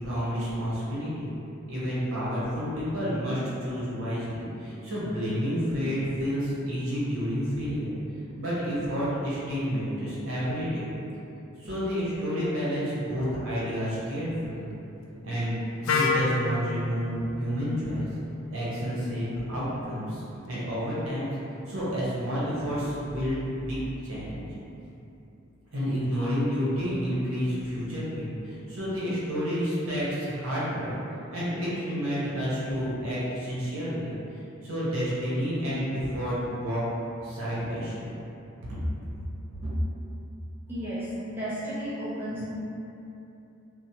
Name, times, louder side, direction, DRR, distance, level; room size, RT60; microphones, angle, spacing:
voice 1, 0.0-1.3 1.7-7.9 8.4-10.8 11.6-14.8 15.2-18.1 18.5-20.2 20.5-21.3 21.7-23.8 24.0-24.4 25.7-30.9 31.3-34.1 34.6-36.8 37.2-38.1 38.7-38.8, equal, 85° right, -9 dB, 0.8 m, -30 dB
Wind instrument woodwind instrument, 15.8-19.7, left 4 dB, 70° left, 0.3 m, -31 dB
sound 1, 23.0-25.6, equal, 60° right, 0.3 m, -45 dB
voice 2, 40.7-42.5, equal, 10° right, -12 dB, 0.6 m, -33 dB
2.9 x 2.0 x 2.8 m, 2.8 s
head